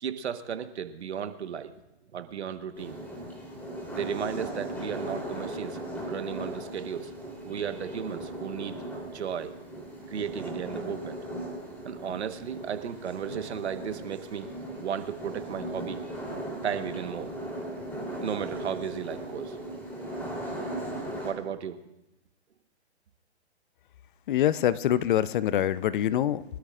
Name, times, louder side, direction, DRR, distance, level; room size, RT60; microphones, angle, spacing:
voice 1, 0.0-1.7 2.1-3.0 3.9-5.8 6.1-7.1 7.4-8.8 9.0-9.6 10.1-11.2 11.8-14.5 14.8-16.0 16.6-17.3 18.2-19.6 21.2-21.8, right 8 dB, 70° right, 9 dB, 1.3 m, -34 dB
sound 1, 2.7-21.3, right 1 dB, 5° left, 3.4 m, -38 dB
voice 2, 24.3-26.4, left 11 dB, 45° left, 17 dB, 0.6 m, -25 dB
24.5 x 13.0 x 2.5 m, 0.94 s
hypercardioid pair, 135°, 34 cm